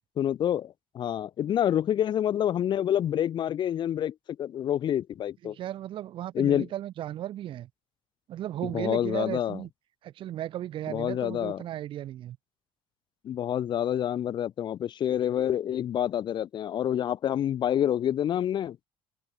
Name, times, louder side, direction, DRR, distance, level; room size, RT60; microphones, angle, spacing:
voice 1, 0.2-5.6 6.3-6.7 8.6-9.6 10.9-11.6 13.2-18.8, left 10 dB, 45° left, 5.8 m, -27 dB
voice 2, 5.4-7.7 8.3-9.7 10.0-12.4, right 12 dB, 55° right, 7.4 m, -35 dB
open air
cardioid pair, 145°, 10 cm